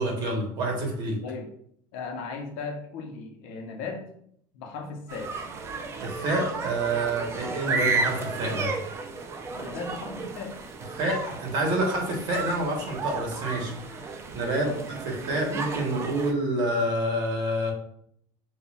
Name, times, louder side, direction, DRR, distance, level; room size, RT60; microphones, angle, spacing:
voice 1, 0.0-1.2 6.0-8.7 11.0-15.0 15.3-17.7, right 1 dB, 50° right, 1 dB, 1.2 m, -28 dB
voice 2, 1.9-4.0 4.5-5.3 9.5-10.5 14.6-14.9, left 4 dB, 75° left, 3 dB, 0.8 m, -36 dB
sound 1, 5.1-16.3, right 4 dB, 25° right, 0.5 m, -33 dB
5.4 x 2.4 x 2.3 m, 0.68 s
supercardioid pair, 130°, 10 cm